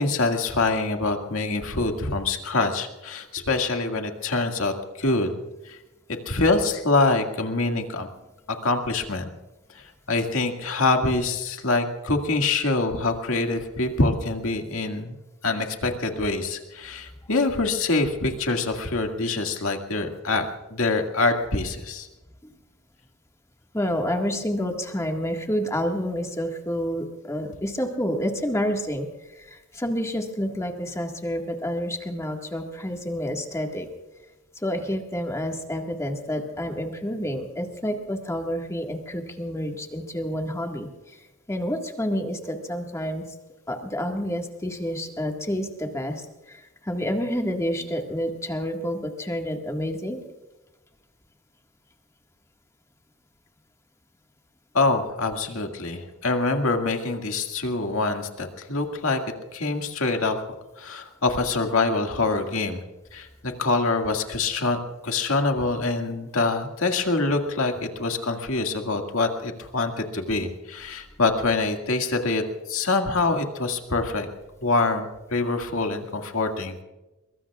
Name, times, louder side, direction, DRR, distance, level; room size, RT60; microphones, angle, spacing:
voice 1, 0.0-5.4 5.6-5.8 6.3-8.1 8.5-9.3 9.7-15.2 15.4-20.5 20.7-22.1 54.7-59.2 59.5-60.4 60.8-62.8 63.1-74.3 74.6-76.8, left 3 dB, 65° left, 4 dB, 2.1 m, -25 dB
voice 2, 23.7-29.1 29.4-33.9 34.6-43.3 43.7-50.2, equal, 15° left, 2 dB, 1.8 m, -29 dB
23.0 x 22.5 x 2.4 m, 1.0 s
head